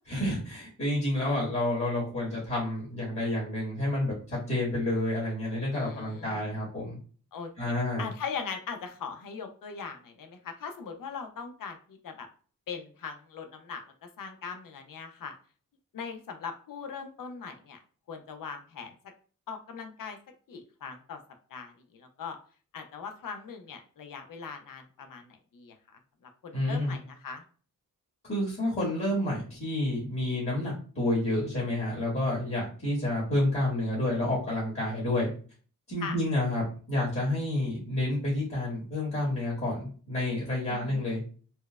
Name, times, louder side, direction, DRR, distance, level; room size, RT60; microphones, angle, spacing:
voice 1, 0.1-7.0 7.6-8.1 26.5-27.0 28.2-35.3 35.9-41.2, left 1 dB, 40° left, -7 dB, 1.5 m, -29 dB
voice 2, 5.7-6.4 7.3-12.3 12.7-13.8 14.2-15.3 15.9-17.8 18.1-18.9 19.5-20.2 20.5-21.2 21.5-22.4 22.7-25.2 25.5-25.7 26.4-27.4 36.0-36.2 40.7-41.1, left 6 dB, 70° left, 5 dB, 0.6 m, -40 dB
4.3 x 2.0 x 2.3 m, 0.40 s
wide cardioid pair, 135°, 34 cm